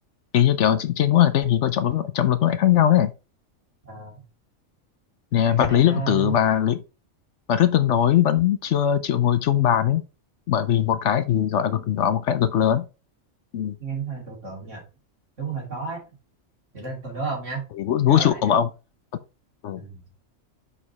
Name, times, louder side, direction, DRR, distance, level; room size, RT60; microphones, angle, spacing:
voice 1, 0.3-3.1 5.3-6.8 7.5-10.0 10.5-12.8 13.5-13.8 17.8-18.7 19.6-19.8, left 10 dB, 65° left, 0.9 m, -20 dB
voice 2, 3.8-4.2 5.5-6.3 13.8-14.8 15.4-16.0 16.7-17.6 18.0-18.5 19.8-20.0, right 5 dB, 65° right, 3.2 m, -32 dB
5.7 x 4.9 x 4.1 m
omnidirectional pair, 1.4 m